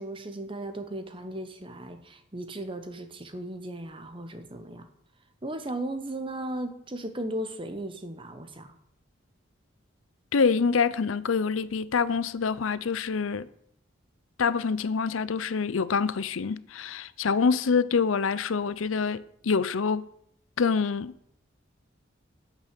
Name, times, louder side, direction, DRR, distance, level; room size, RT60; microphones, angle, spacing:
voice 1, 0.0-4.9 5.4-8.7, right 1 dB, 25° right, 1.0 m, -36 dB
voice 2, 10.3-13.5 14.4-20.1 20.6-21.1, left 5 dB, 85° left, 0.6 m, -26 dB
8.9 x 6.0 x 8.2 m
head